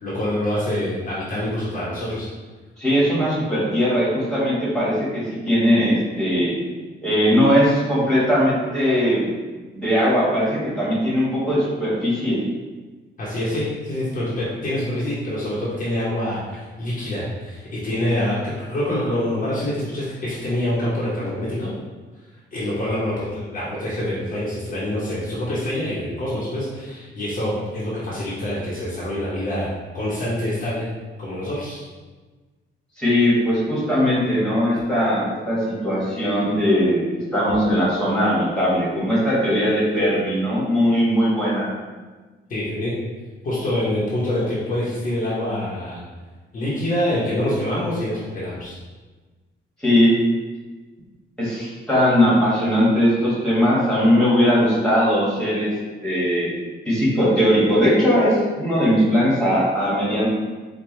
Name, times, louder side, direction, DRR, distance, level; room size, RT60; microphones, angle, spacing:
voice 1, 0.0-2.3 13.2-21.7 22.5-30.9 31.2-31.9 34.7-34.8 42.5-42.9 43.4-46.0 46.5-48.7, left 1 dB, 45° left, -7 dB, 0.9 m, -26 dB
voice 2, 2.8-6.5 7.0-9.3 9.7-12.4 33.0-37.0 37.3-41.7 49.8-50.1 51.4-55.7 56.0-56.5 56.8-60.3, equal, 5° left, -8 dB, 1.4 m, -19 dB
4.5 x 2.3 x 3.1 m, 1.3 s
wide cardioid pair, 165°, 19 cm